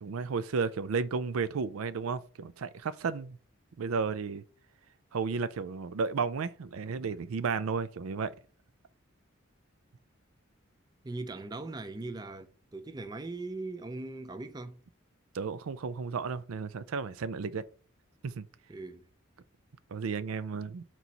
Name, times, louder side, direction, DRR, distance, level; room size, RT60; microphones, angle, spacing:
voice 1, 0.0-3.4 3.8-4.4 5.1-8.3 15.3-17.6 18.2-18.5 19.9-20.8, right 5 dB, 85° right, 0.5 m, -33 dB
voice 2, 11.0-14.8 18.7-19.1, right 2 dB, 20° right, 0.4 m, -40 dB
4.5 x 4.1 x 5.1 m
head